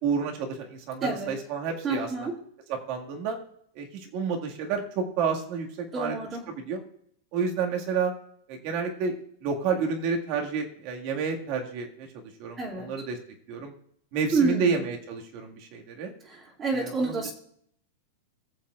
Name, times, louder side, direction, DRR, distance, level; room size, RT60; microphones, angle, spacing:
voice 1, 0.0-2.1 2.9-3.4 3.8-5.7 5.9-6.1 6.5-6.8 7.3-8.1 8.5-9.1 9.4-13.2 13.5-13.7 14.1-16.1 16.7-17.2, right 5 dB, 50° right, 2 dB, 2.0 m, -30 dB
voice 2, 1.0-1.3 1.8-2.4 5.9-6.4 12.6-12.9 14.3-14.8 16.3-17.3, right 3 dB, 25° right, -4 dB, 2.5 m, -28 dB
19.5 x 7.3 x 2.5 m, 0.66 s
supercardioid pair, 135°, 0 cm